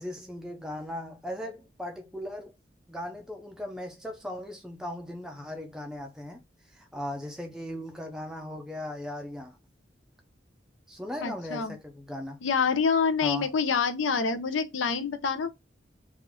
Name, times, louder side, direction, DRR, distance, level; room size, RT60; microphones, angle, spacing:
voice 1, 0.0-2.5 2.9-6.4 6.7-9.5 10.9-12.4 13.2-13.5, left 1 dB, 5° right, 0.4 m, -38 dB
voice 2, 11.2-11.7 12.4-15.5, left 5 dB, 85° left, 0.6 m, -26 dB
3.5 x 2.5 x 3.4 m
head